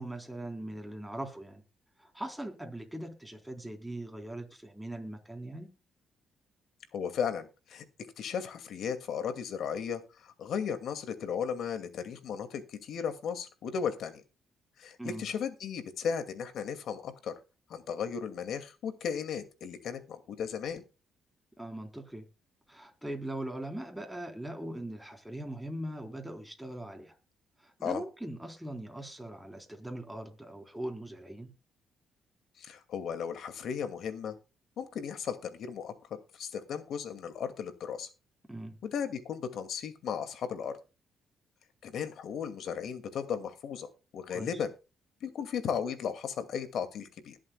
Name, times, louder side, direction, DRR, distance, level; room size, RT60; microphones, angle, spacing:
voice 1, 0.0-1.6 2.0-5.7 15.0-15.2 21.6-22.3 22.7-27.2 27.6-31.5 38.5-38.8 44.3-44.6, right 1 dB, 5° right, 3 dB, 3.8 m, -40 dB
voice 2, 6.9-7.9 8.2-14.2 14.8-17.3 17.7-20.8 27.8-28.0 32.6-34.4 34.8-35.9 36.3-38.1 38.8-40.7 41.8-44.7 45.2-47.4, left 7 dB, 70° left, 10 dB, 2.3 m, -35 dB
21.0 x 7.6 x 2.3 m, 0.29 s
cardioid pair, 90°, 0 cm